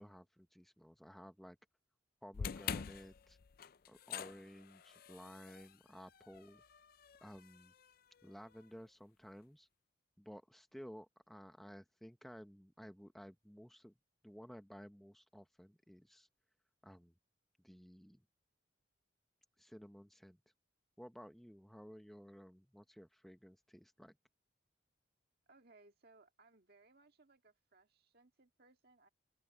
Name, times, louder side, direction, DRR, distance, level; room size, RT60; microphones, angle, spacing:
voice 1, 0.0-1.6 2.2-3.4 3.9-6.6 7.2-7.7 8.2-9.7 10.2-13.9 14.2-16.3 16.8-17.1 17.6-18.2 19.6-20.4 21.0-24.2, equal, ahead, 0.7 m, -55 dB
sound 1, 2.3-8.6, left 7 dB, 45° left, 0.4 m, -47 dB
voice 2, 25.5-29.1, right 3 dB, 50° right, 1.8 m, -66 dB
open air
head